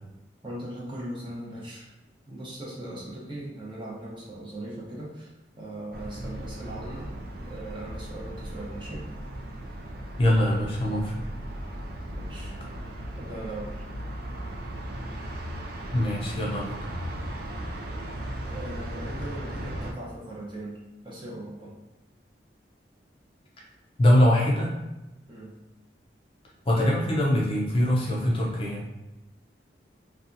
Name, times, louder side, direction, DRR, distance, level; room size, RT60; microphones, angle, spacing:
voice 1, 0.4-1.9 2.3-5.3 5.6-7.1 7.4-9.0 12.1-12.5 12.8-13.8 18.5-20.7 21.0-21.7 25.3-25.5, right 1 dB, 25° right, -5 dB, 0.7 m, -39 dB
sound 1, 5.9-19.9, right 1 dB, 55° right, 0.3 m, -37 dB
voice 2, 10.2-11.3 15.9-16.8 24.0-24.7 26.7-28.8, left 1 dB, 30° left, -4 dB, 0.4 m, -23 dB
2.7 x 2.3 x 2.5 m, 1.0 s
head